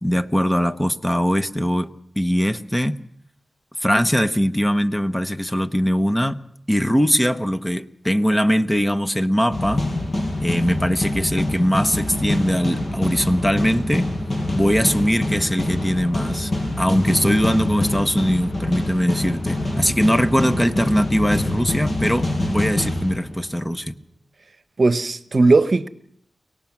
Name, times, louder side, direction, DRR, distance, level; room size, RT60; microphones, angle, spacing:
voice 1, 0.0-3.0 3.8-6.4 6.7-9.9 10.4-14.1 14.5-16.5 16.8-24.0, equal, 10° left, 1.2 m, -21 dB
sound 1, 9.5-23.7, left 1 dB, 50° left, 6.0 m, -25 dB
voice 2, 24.8-25.9, right 3 dB, 55° right, 1.0 m, -17 dB
24.5 x 18.5 x 6.0 m
cardioid pair, 45°, 0 cm